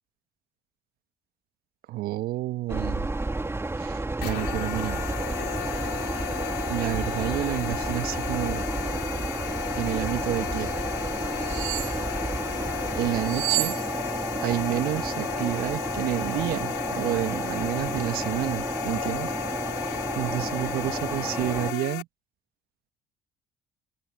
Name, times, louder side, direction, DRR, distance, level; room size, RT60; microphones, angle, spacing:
voice 1, 1.9-3.1 3.8-5.0 6.7-8.6 9.8-10.7 12.9-13.8 14.4-19.3 19.8-22.1, right 16 dB, 65° right, 1.2 m, -30 dB
sound 1, 2.7-21.7, right 2 dB, 15° right, 1.7 m, -31 dB
sound 2, 4.2-22.0, left 18 dB, 70° left, 3.1 m, -34 dB
sound 3, 11.4-12.0 13.2-14.4 14.7-14.9, right 23 dB, 80° right, 0.7 m, -30 dB
open air
hypercardioid pair, 55°, 17 cm